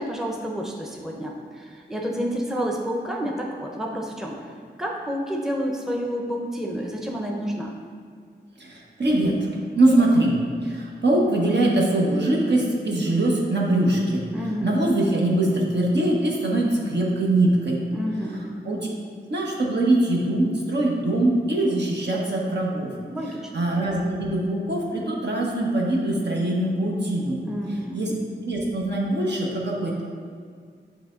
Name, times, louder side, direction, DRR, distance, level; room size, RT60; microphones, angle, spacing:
voice 1, 0.0-4.5 4.8-7.7 14.3-14.7 17.9-18.6 23.1-23.6 27.4-28.2, equal, ahead, 0 dB, 0.6 m, -29 dB
voice 2, 8.6-9.5 9.7-14.3 14.6-17.8 18.6-18.9 19.3-22.9 23.5-27.4 27.9-28.1 28.4-30.0, right 1 dB, 70° right, -3 dB, 1.1 m, -22 dB
8.9 x 3.4 x 3.7 m, 2.1 s
wide cardioid pair, 85°, 19 cm